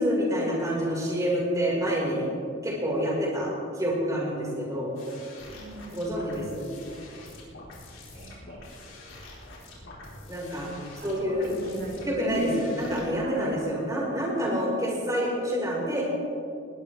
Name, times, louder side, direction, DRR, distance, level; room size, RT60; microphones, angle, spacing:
voice 1, 0.0-2.3 2.6-3.5 3.8-4.9 5.9-6.7 10.3-10.7 11.0-11.5 12.0-16.1, equal, 15° right, -4 dB, 5.4 m, -27 dB
sound 1, 4.9-13.0, left 2 dB, 80° left, 4.5 m, -45 dB
voice 2, 5.5-6.1 8.1-8.6 10.9-12.5 13.2-13.5 14.3-14.7, right 2 dB, 55° right, -4 dB, 4.6 m, -36 dB
20.0 x 20.0 x 3.6 m, 2.5 s
head